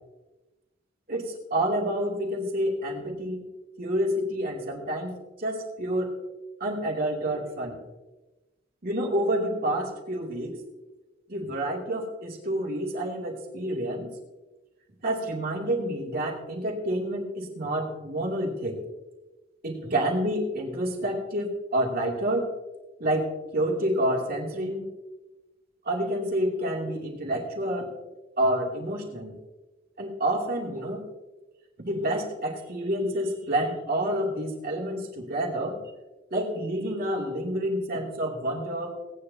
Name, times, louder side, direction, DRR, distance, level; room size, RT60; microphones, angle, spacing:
voice 1, 1.1-3.4 3.8-6.1 6.6-7.8 8.8-10.6 11.3-14.1 15.0-18.8 19.6-22.5 23.0-24.9 25.8-27.9 28.4-29.4 30.0-31.0 31.8-35.8 36.3-39.0, right 1 dB, 50° right, -2 dB, 2.7 m, -28 dB
18.5 x 10.0 x 2.8 m, 1.1 s
head